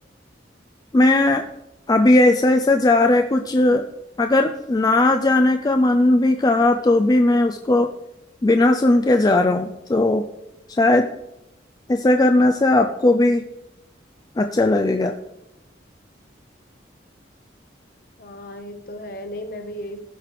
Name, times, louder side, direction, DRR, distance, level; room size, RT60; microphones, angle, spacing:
voice 1, 0.9-1.4 1.9-3.8 4.2-7.9 8.4-10.2 10.8-11.1 11.9-13.4 14.4-15.1, left 2 dB, 20° left, 6 dB, 0.3 m, -17 dB
voice 2, 18.2-20.0, equal, 50° left, 7 dB, 0.9 m, -35 dB
15.0 x 5.9 x 3.3 m, 0.89 s
head